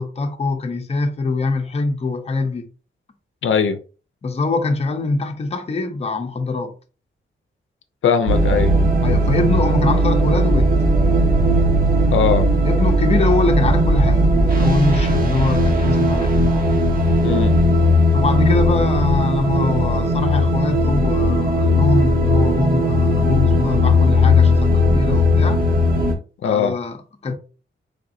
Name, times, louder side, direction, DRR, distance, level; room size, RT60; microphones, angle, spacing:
voice 1, 0.0-2.7 4.2-6.7 9.0-10.7 12.6-16.3 18.1-25.6 26.4-27.3, left 3 dB, 30° left, 0.6 m, -23 dB
voice 2, 3.4-3.8 8.0-8.7 12.1-12.5 17.2-17.6 26.4-26.7, left 7 dB, 80° left, 0.5 m, -19 dB
sound 1, 8.3-26.1, left 1 dB, 50° right, 0.8 m, -17 dB
3.8 x 3.5 x 2.5 m
wide cardioid pair, 130°, 20 cm